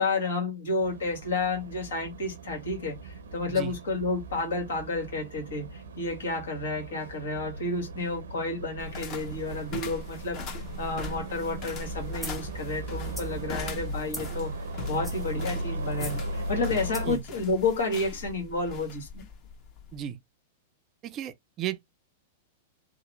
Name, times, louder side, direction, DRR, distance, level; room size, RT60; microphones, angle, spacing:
voice 1, 0.0-10.4 10.8-14.5 14.9-19.3, left 3 dB, 70° left, 1.3 m, -31 dB
sound 1, 0.8-17.2, right 1 dB, 75° right, 0.6 m, -38 dB
sound 2, 8.8-20.0, left 5 dB, 40° left, 1.0 m, -41 dB
sound 3, 12.2-12.4 13.0-13.3 14.1-14.4 14.9-15.3 15.9-16.2 16.9-17.2, equal, 5° left, 0.8 m, -41 dB
voice 2, 21.0-21.9, right 11 dB, 35° right, 0.4 m, -34 dB
2.9 x 2.0 x 2.9 m
figure-of-eight pair, 100°, 0 cm